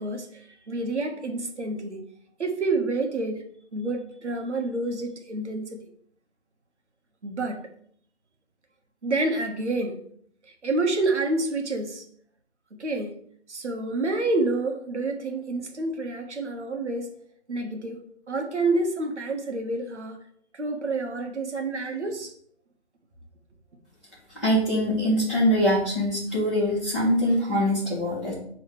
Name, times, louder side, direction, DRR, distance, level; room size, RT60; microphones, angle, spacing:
voice 1, 0.0-2.0 2.4-3.4 3.7-5.8 7.2-7.7 9.0-10.0 10.5-12.0 12.7-13.2 13.5-17.2 17.5-18.0 18.3-20.2 20.5-22.3, right 2 dB, 75° right, 4 dB, 1.7 m, -28 dB
voice 2, 24.4-28.3, equal, ahead, -16 dB, 1.9 m, -23 dB
9.6 x 3.9 x 3.4 m, 0.62 s
hypercardioid pair, 175°, 35 cm